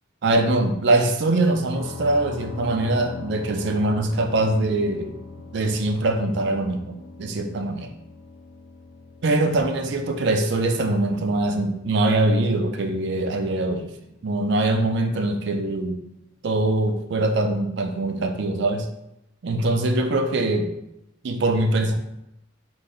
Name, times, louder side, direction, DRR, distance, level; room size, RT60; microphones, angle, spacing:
voice 1, 0.2-5.1 5.5-7.9 9.2-13.9 14.2-16.0 16.4-18.9 19.4-20.7 21.2-21.9, right 2 dB, 60° right, 6 dB, 0.4 m, -23 dB
sound 1, 1.7-15.4, left 3 dB, 75° left, 0.4 m, -42 dB
3.2 x 2.6 x 3.5 m, 0.85 s
head